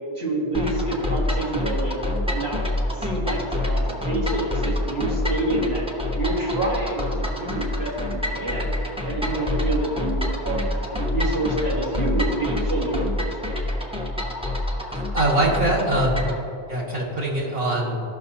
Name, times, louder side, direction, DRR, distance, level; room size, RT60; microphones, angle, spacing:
voice 1, 0.2-2.6 2.9-5.9 6.2-8.7 9.0-13.1, right 2 dB, 85° right, -5 dB, 2.1 m, -27 dB
sound 1, 0.5-16.4, left 1 dB, 5° right, 0.7 m, -27 dB
voice 2, 14.9-16.3 16.7-18.0, right 1 dB, 65° right, -4 dB, 2.1 m, -23 dB
15.0 x 6.0 x 2.7 m, 2.7 s
omnidirectional pair, 1.1 m